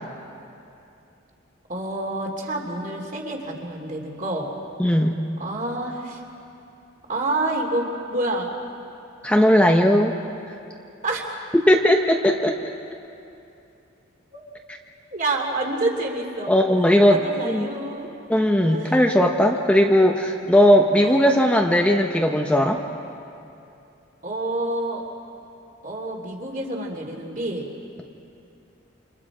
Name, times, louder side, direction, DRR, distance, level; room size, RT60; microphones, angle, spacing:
voice 1, 1.7-4.5 5.4-6.2 7.1-8.5 11.0-11.3 14.3-14.4 15.1-16.5 17.1-18.1 18.6-19.0 21.0-21.3 24.2-25.0 25.8-27.6, right 2 dB, 40° right, 0 dB, 3.0 m, -28 dB
voice 2, 4.8-5.2 9.2-10.2 11.7-12.6 16.5-17.7 18.3-22.8, equal, 5° left, 1 dB, 0.9 m, -18 dB
29.0 x 26.5 x 5.0 m, 2.7 s
head